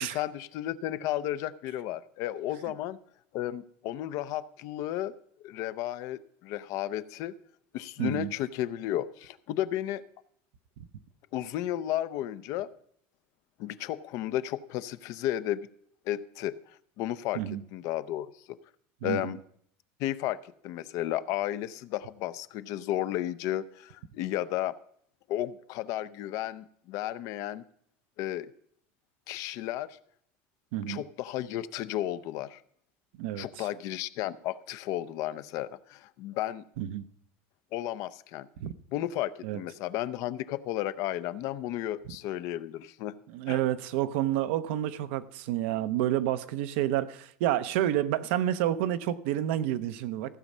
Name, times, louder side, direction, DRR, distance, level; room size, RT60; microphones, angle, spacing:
voice 1, 0.0-3.0 3.3-5.1 5.4-7.3 7.7-10.0 11.3-12.7 13.6-15.7 16.1-16.5 17.0-18.6 19.0-19.4 20.0-24.7 25.3-27.6 28.2-28.5 29.3-30.0 30.9-32.6 33.4-36.6 37.7-38.5 38.9-43.2 43.5-43.6, left 13 dB, 60° left, 14 dB, 0.6 m, -33 dB
voice 2, 8.0-8.3 10.8-10.9 17.3-17.6 19.0-19.3 30.7-31.0 33.2-33.7 36.8-37.0 38.6-38.7 39.4-39.6 43.3-50.4, right 12 dB, 80° right, 12 dB, 0.7 m, -29 dB
15.0 x 7.1 x 5.4 m, 0.66 s
supercardioid pair, 135°, 6 cm